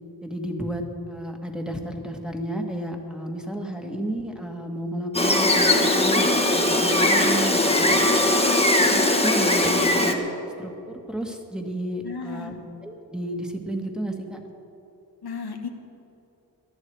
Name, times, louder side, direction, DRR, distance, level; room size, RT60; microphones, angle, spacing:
voice 1, 0.2-8.1 8.8-10.2 10.6-12.5 12.8-14.4, right 1 dB, ahead, 1 dB, 2.0 m, -32 dB
Gull seagull, 5.1-10.1, left 1 dB, 15° left, 1.5 m, -20 dB
voice 2, 12.0-12.6 15.2-15.7, left 5 dB, 80° left, 4 dB, 1.2 m, -35 dB
19.5 x 11.5 x 4.8 m, 2.9 s
cardioid pair, 40°, 38 cm